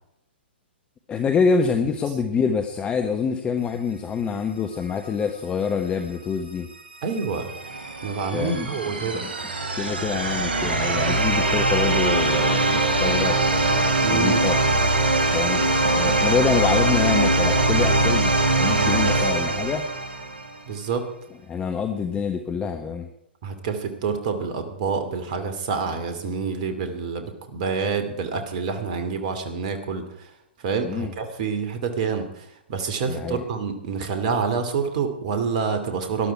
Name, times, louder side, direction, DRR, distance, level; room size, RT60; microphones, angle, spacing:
voice 1, 1.1-6.7 8.3-8.7 9.1-9.3 9.7-13.4 14.1-14.6 15.3-19.9 21.5-23.1 30.8-31.1 33.1-33.4, left 6 dB, 15° left, 6 dB, 1.2 m, -26 dB
sound 1, 6.8-20.6, right 2 dB, 65° right, 3.4 m, -22 dB
voice 2, 7.0-7.5 8.0-9.2 14.0-14.4 20.7-21.1 23.4-30.3 30.6-36.3, right 5 dB, 45° right, 8 dB, 2.5 m, -27 dB
19.0 x 12.0 x 4.7 m, 0.80 s
figure-of-eight pair, 115°, 6 cm